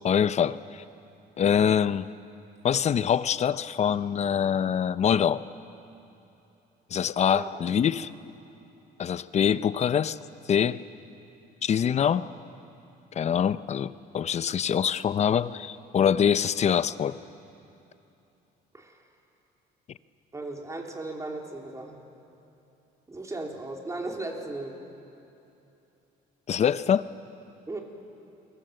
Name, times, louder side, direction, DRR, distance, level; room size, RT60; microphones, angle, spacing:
voice 1, 0.0-0.8 1.4-2.1 2.6-5.4 6.9-8.1 9.0-10.2 10.5-10.8 11.6-12.3 13.1-17.2 26.5-27.1, left 8 dB, 40° left, 15 dB, 0.7 m, -24 dB
voice 2, 20.3-22.0 23.1-24.7 27.7-27.8, right 2 dB, 20° right, 1 dB, 3.8 m, -36 dB
29.0 x 23.5 x 7.8 m, 2.9 s
cardioid pair, 110°, 17 cm